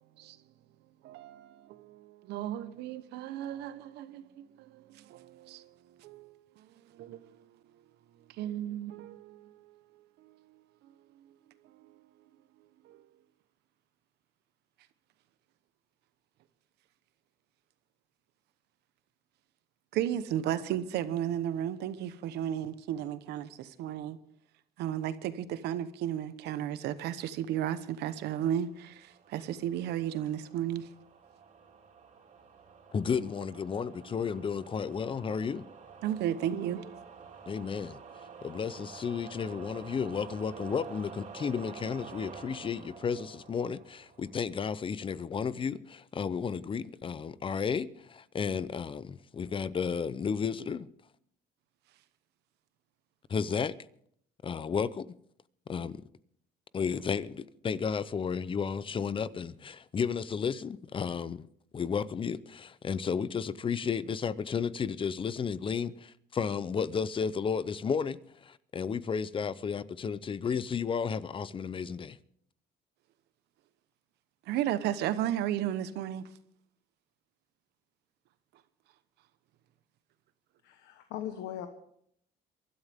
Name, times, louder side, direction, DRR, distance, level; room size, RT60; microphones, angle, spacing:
voice 1, 1.0-7.5 8.4-9.8 10.2-10.6 11.6-12.0 12.8-13.0 19.9-24.2 24.8-30.9 36.0-36.9 74.5-76.3, right 11 dB, 80° right, 1.1 m, -34 dB
sound 1, 28.2-44.6, right 5 dB, 45° right, 3.4 m, -50 dB
voice 2, 32.9-35.6 37.5-38.0 38.4-50.9 53.3-53.7 54.4-55.1 55.7-56.0 56.7-61.5 61.7-72.2, left 6 dB, 30° left, 0.7 m, -33 dB
voice 3, 80.6-81.7, left 11 dB, 90° left, 1.3 m, -39 dB
23.5 x 12.5 x 3.6 m
cardioid pair, 110°, 17 cm